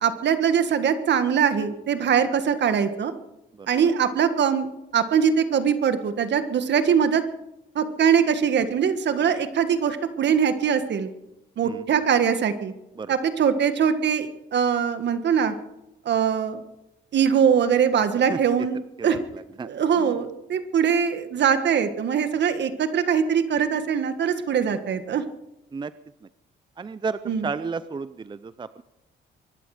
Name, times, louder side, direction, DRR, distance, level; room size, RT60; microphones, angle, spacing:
voice 1, 0.0-3.1 3.7-4.7 4.9-7.2 7.8-11.1 11.6-12.7 13.1-15.5 16.1-16.6 17.1-19.2 19.6-25.2 27.3-27.5, right 7 dB, 60° right, 10 dB, 1.7 m, -22 dB
voice 2, 19.0-19.7 20.0-20.1 25.7-25.9 26.8-28.8, right 5 dB, 25° right, 15 dB, 0.5 m, -33 dB
23.5 x 12.0 x 5.0 m, 0.92 s
cardioid pair, 90°, 20 cm